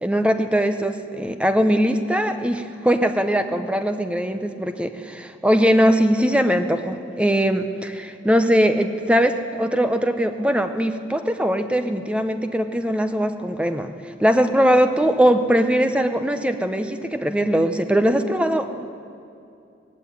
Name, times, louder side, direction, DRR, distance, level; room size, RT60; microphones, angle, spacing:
voice 1, 0.0-13.9 14.2-18.7, equal, 5° right, 8 dB, 0.7 m, -20 dB
17.5 x 16.0 x 9.3 m, 2.6 s
head